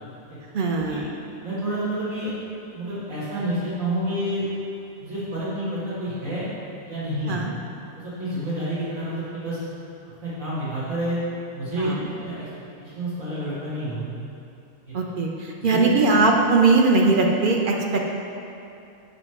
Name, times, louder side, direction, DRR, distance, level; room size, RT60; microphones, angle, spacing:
voice 1, 0.5-1.1 7.3-7.5 11.8-12.1 14.9-18.0, right 3 dB, 50° right, 0 dB, 0.7 m, -20 dB
voice 2, 1.4-2.3 2.7-4.4 5.0-6.5 6.8-7.4 7.9-9.6 10.1-11.2 11.5-12.5 12.8-14.1 14.8-15.0 15.6-15.9, right 1 dB, 75° right, -11 dB, 2.2 m, -29 dB
7.9 x 3.2 x 5.8 m, 2.7 s
omnidirectional pair, 1.4 m